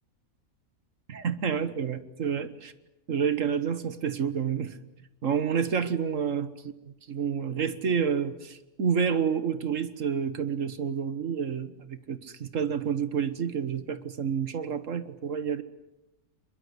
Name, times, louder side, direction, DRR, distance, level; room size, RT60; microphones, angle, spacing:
voice 1, 1.1-2.7 3.1-4.7 5.2-6.7 7.1-15.6, right 7 dB, 60° right, 13 dB, 1.7 m, -29 dB
23.5 x 22.5 x 9.9 m, 0.95 s
omnidirectional pair, 1.5 m